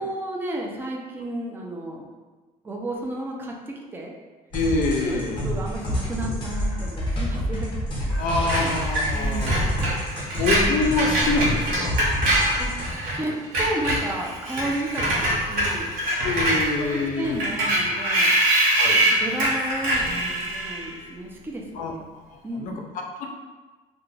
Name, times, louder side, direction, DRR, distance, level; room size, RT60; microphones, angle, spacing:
voice 1, 0.0-2.1 2.6-4.1 5.0-7.8 8.6-8.7 9.1-10.1 12.6-12.7 13.1-15.9 16.9-18.4 19.1-22.0 22.4-22.9, right 1 dB, 15° right, -1 dB, 0.4 m, -32 dB
voice 2, 4.5-5.5 8.2-9.5 10.4-12.0 13.3-13.4 16.1-17.4 18.8-19.0 21.7-21.9 22.3-22.7 23.2-23.3, left 3 dB, 65° left, 2 dB, 0.4 m, -26 dB
sound 1, 4.5-12.9, equal, 35° left, 0.7 m, -28 dB
Screech, 8.5-13.2 13.4-20.9, right 1 dB, 80° right, 0.9 m, -24 dB
2.4 x 2.2 x 3.1 m, 1.3 s
cardioid pair, 140°, 15 cm